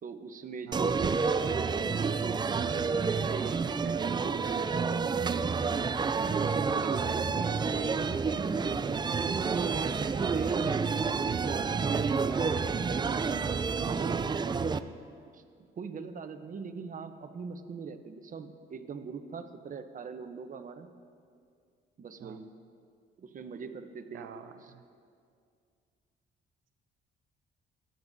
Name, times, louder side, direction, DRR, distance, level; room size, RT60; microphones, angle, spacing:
voice 1, 0.0-2.3 3.0-5.6 6.2-8.9 9.4-12.1 13.1-13.5 13.8-14.9 15.3-15.4 15.8-20.9 22.0-22.5 23.2-24.3 24.6-24.7, right 5 dB, 40° right, 7 dB, 0.8 m, -42 dB
sound 1, 0.7-14.8, right 5 dB, 20° right, 0.3 m, -29 dB
voice 2, 3.6-4.3 6.7-7.0 22.2-22.4 24.1-24.8, right 9 dB, 75° right, 7 dB, 0.6 m, -47 dB
17.0 x 10.5 x 2.7 m, 2.2 s
cardioid pair, 90°, 20 cm